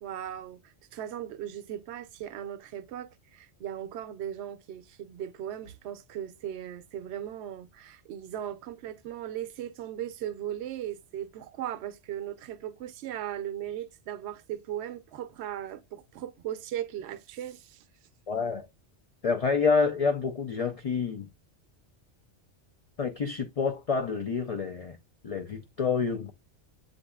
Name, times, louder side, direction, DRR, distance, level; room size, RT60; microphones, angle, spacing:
voice 1, 0.0-17.8, right 11 dB, 70° right, 0.8 m, -38 dB
voice 2, 18.3-18.7 19.2-21.3 23.0-25.0 25.2-26.3, left 5 dB, 55° left, 0.4 m, -28 dB
7.8 x 2.6 x 2.3 m
omnidirectional pair, 1.2 m